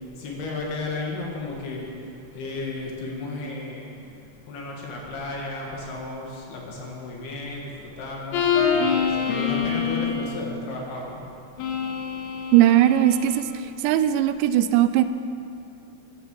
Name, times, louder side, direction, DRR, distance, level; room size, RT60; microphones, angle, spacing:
voice 1, 0.2-1.9 2.3-3.9 4.5-11.2 11.6-11.7, left 2 dB, 65° left, -1 dB, 3.9 m, -33 dB
sound 1, 8.3-10.3 11.6-13.4, left 7 dB, 90° left, 3.8 m, -25 dB
voice 2, 12.5-13.5 13.8-15.0, right 13 dB, 85° right, 11 dB, 2.9 m, -18 dB
15.0 x 11.5 x 6.8 m, 2.5 s
omnidirectional pair, 5.1 m